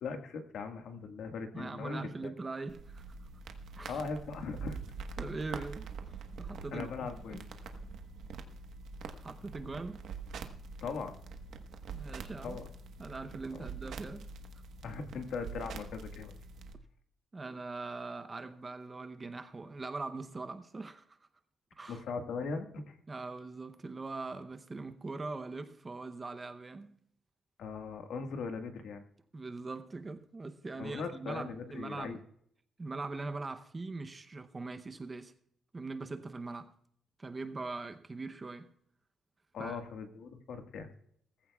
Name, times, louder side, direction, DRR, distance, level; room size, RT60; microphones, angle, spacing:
voice 1, 0.0-2.3 3.9-4.8 5.5-5.6 6.7-7.5 10.8-11.1 12.4-12.6 14.8-16.3 21.9-23.0 27.6-29.0 30.8-32.2 39.5-40.9, left 4 dB, 70° left, 1.6 m, -39 dB
voice 2, 1.5-3.0 3.8-4.0 5.2-7.4 9.2-10.1 11.9-12.6 13.0-14.3 17.3-21.2 21.8-22.0 23.1-27.0 29.3-32.2 32.8-35.3 35.7-36.7 37.2-38.7 39.6-39.8, right 3 dB, 20° right, 0.7 m, -41 dB
sound 1, 2.7-16.7, right 4 dB, 65° right, 1.2 m, -45 dB
19.5 x 15.0 x 2.3 m
cardioid pair, 165°, 0 cm